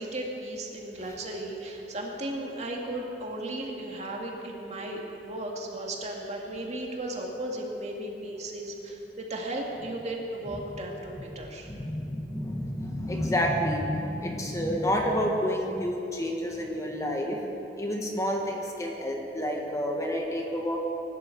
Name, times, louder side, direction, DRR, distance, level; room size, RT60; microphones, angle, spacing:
voice 1, 0.0-11.7, right 1 dB, 40° right, 0 dB, 2.1 m, -35 dB
voice 2, 11.6-17.5 17.7-20.9, equal, 20° left, 1 dB, 1.5 m, -29 dB
23.5 x 12.0 x 4.7 m, 3.0 s
head